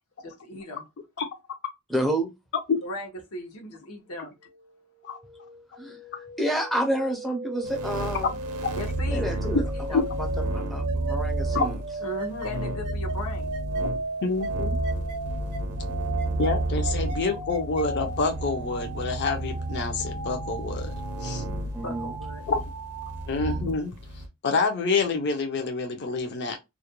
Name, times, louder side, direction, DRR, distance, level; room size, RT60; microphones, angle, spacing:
voice 1, 0.2-0.9 2.8-4.3 8.7-9.4 9.9-10.0 12.0-13.5 21.6-22.4, left 1 dB, 85° left, 0.8 m, -37 dB
voice 2, 1.9-2.3 5.8-6.0 6.4-8.3 9.1-9.6 9.9-11.8 21.7-22.1, right 1 dB, ahead, 0.5 m, -29 dB
sound 1, 4.4-23.6, right 2 dB, 50° right, 0.6 m, -37 dB
sound 2, 7.6-24.3, right 1 dB, 90° right, 0.5 m, -32 dB
voice 3, 14.2-14.8 16.4-20.9 21.2-21.4 22.5-22.6 23.3-23.9 24.4-26.6, left 4 dB, 50° left, 0.5 m, -27 dB
2.4 x 2.1 x 2.9 m
head